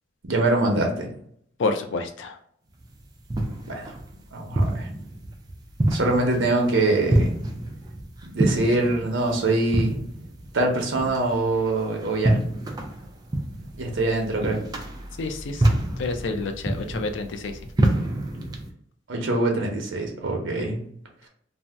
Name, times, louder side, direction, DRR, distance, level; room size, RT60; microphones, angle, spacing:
voice 1, 0.3-1.1 3.6-3.9 4.3-4.9 5.9-7.4 8.3-10.0 10.5-12.4 13.8-14.6 19.1-20.8, right 2 dB, 80° right, 2 dB, 0.7 m, -24 dB
voice 2, 1.6-2.4 15.2-17.5, left 3 dB, 75° left, 6 dB, 0.4 m, -29 dB
sound 1, 2.8-18.7, right 1 dB, 20° right, 0.3 m, -27 dB
2.6 x 2.0 x 3.3 m, 0.66 s
head